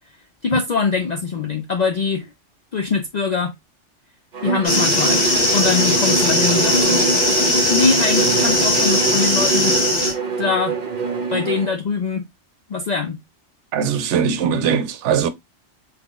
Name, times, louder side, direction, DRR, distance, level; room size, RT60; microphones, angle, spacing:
voice 1, 0.4-2.3 2.7-3.6 4.4-5.3 5.5-7.0 7.7-9.8 10.4-10.8 11.3-12.3 12.7-13.2, left 5 dB, 65° left, 0.4 m, -22 dB
Bowed string instrument, 4.3-11.8, right 5 dB, 45° right, 0.8 m, -25 dB
sound 1, 4.6-10.1, left 1 dB, 35° left, 1.2 m, -18 dB
voice 2, 13.7-15.3, right 7 dB, 75° right, 0.9 m, -20 dB
3.7 x 3.0 x 2.4 m
omnidirectional pair, 1.2 m